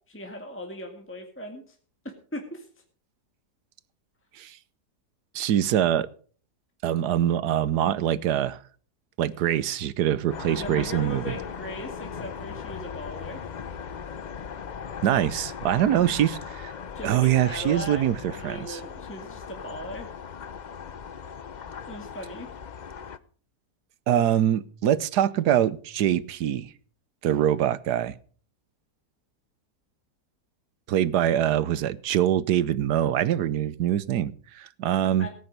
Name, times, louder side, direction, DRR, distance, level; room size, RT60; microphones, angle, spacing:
voice 1, 0.1-1.8 2.3-2.7 10.6-13.4 15.9-16.3 16.9-20.1 21.9-22.5 35.2-35.3, left 1 dB, 10° left, 3 dB, 1.9 m, -38 dB
voice 2, 5.3-6.1 6.8-8.6 9.2-11.3 15.0-16.7 17.0-18.8 24.1-26.7 27.2-28.2 30.9-35.3, right 11 dB, 85° right, 17 dB, 1.4 m, -24 dB
sound 1, 10.3-23.2, left 7 dB, 55° left, 0.5 m, -38 dB
17.5 x 9.2 x 5.2 m, 0.44 s
omnidirectional pair, 1.7 m